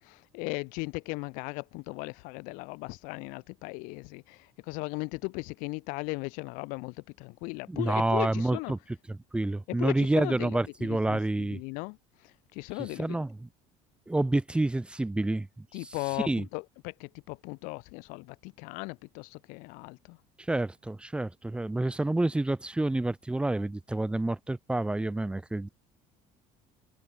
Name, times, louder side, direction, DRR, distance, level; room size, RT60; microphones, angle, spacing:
voice 1, 0.0-8.7 9.7-12.0 12.2-13.2 15.7-20.2, left 29 dB, 85° left, 4.0 m, -37 dB
voice 2, 7.7-8.8 9.1-11.6 13.0-13.5 14.1-15.9 16.2-16.5 20.4-25.7, right 2 dB, 5° right, 1.8 m, -28 dB
open air
cardioid pair, 145°, 14 cm